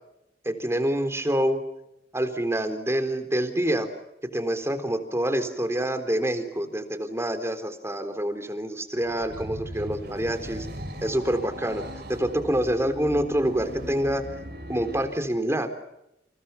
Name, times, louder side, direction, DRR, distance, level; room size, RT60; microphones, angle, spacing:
voice 1, 0.5-1.6 2.1-3.9 4.3-10.7 11.0-11.8 12.1-14.2 14.7-15.7, right 1 dB, 15° right, 9 dB, 3.7 m, -26 dB
sound 1, 9.0-15.2, equal, 65° right, 6.1 m, -39 dB
30.0 x 29.0 x 5.8 m, 0.86 s
head